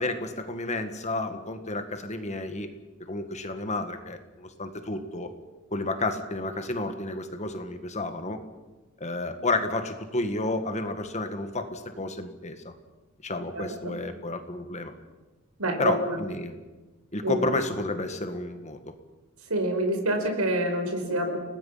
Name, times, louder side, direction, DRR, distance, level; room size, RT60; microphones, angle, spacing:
voice 1, 0.0-2.7 3.0-5.3 5.7-8.4 9.0-12.7 13.2-14.9 15.8-16.6 17.1-18.8, left 2 dB, 30° left, 7 dB, 1.9 m, -31 dB
voice 2, 13.5-14.0 15.6-16.2 17.2-17.5 19.5-21.4, right 1 dB, 85° right, 4 dB, 5.1 m, -27 dB
30.0 x 19.5 x 5.8 m, 1.2 s
head